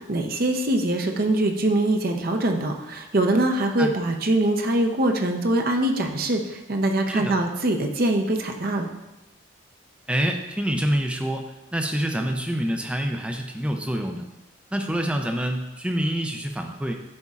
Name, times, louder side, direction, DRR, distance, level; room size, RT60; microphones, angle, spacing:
voice 1, 0.0-8.9, right 1 dB, 45° right, 3 dB, 0.6 m, -23 dB
voice 2, 10.1-11.4 11.7-14.3 14.7-16.9, right 1 dB, 5° right, 3 dB, 0.4 m, -26 dB
10.5 x 4.2 x 2.4 m, 1.0 s
head